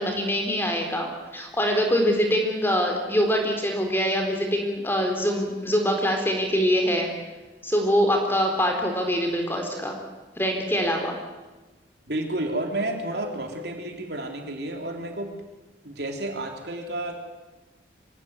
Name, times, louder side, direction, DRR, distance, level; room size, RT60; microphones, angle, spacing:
voice 1, 0.0-7.1 7.6-10.0 10.4-11.2, equal, 10° left, 2 dB, 4.0 m, -24 dB
voice 2, 12.1-15.3 15.8-17.1, right 1 dB, 60° right, 3 dB, 3.6 m, -31 dB
25.5 x 17.5 x 9.6 m, 1.2 s
head